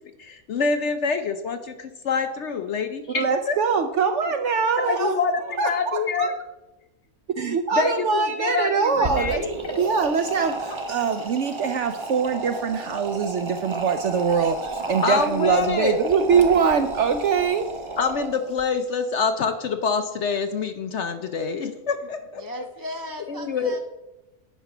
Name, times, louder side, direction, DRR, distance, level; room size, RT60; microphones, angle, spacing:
voice 1, 0.2-3.6 4.8-6.3 7.7-9.5 15.0-16.0 18.0-22.4 23.3-23.7, left 5 dB, 60° left, 8 dB, 0.8 m, -26 dB
voice 2, 3.1-5.1 5.6-6.3 7.4-9.4 9.8-17.7, right 6 dB, 65° right, 8 dB, 0.7 m, -23 dB
sound 1, 8.9-18.6, right 3 dB, 30° right, 0.6 m, -32 dB
voice 3, 22.4-23.8, left 1 dB, 30° left, 4 dB, 0.4 m, -36 dB
9.5 x 5.5 x 5.9 m, 1.0 s
omnidirectional pair, 1.7 m